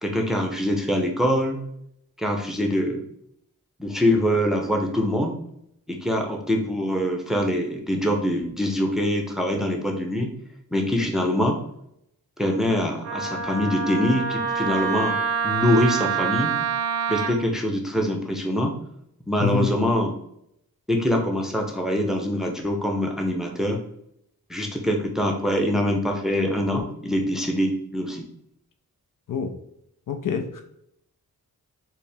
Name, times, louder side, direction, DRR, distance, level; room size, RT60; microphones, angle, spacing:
voice 1, 0.0-1.6 2.2-3.0 3.8-5.4 5.9-10.3 10.7-11.6 12.4-15.2 15.4-16.5 17.1-18.7 19.3-20.1 20.9-23.8 24.5-28.3, left 1 dB, ahead, 2 dB, 0.6 m, -24 dB
Wind instrument woodwind instrument, 13.0-17.3, right 6 dB, 40° right, 0.6 m, -26 dB
voice 2, 19.4-19.7 29.3-29.5 30.1-30.6, left 6 dB, 60° left, 5 dB, 0.5 m, -26 dB
4.5 x 2.1 x 3.4 m, 0.75 s
wide cardioid pair, 95°, 37 cm